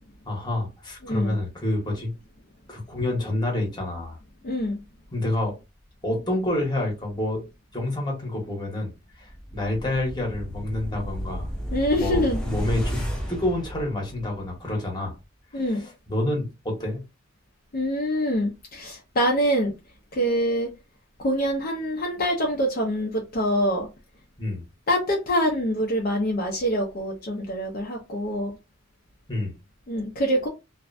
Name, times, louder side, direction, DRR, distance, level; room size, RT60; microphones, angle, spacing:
voice 1, 0.2-2.1 2.7-4.2 5.1-5.6 6.0-7.4 7.7-8.9 9.2-11.5 11.9-15.2 15.5-17.0 24.4-24.6 29.3-29.5, left 1 dB, 20° left, 1.0 m, -28 dB
voice 2, 1.0-1.4 4.4-4.8 11.7-12.4 12.8-12.9 15.5-15.9 17.7-19.7 20.1-20.7 21.2-23.9 24.9-28.5 29.9-30.5, equal, 45° left, 0.5 m, -25 dB
sound 1, 9.3-14.5 14.8-14.9, equal, 5° left, 0.6 m, -32 dB
2.5 x 2.1 x 2.5 m
head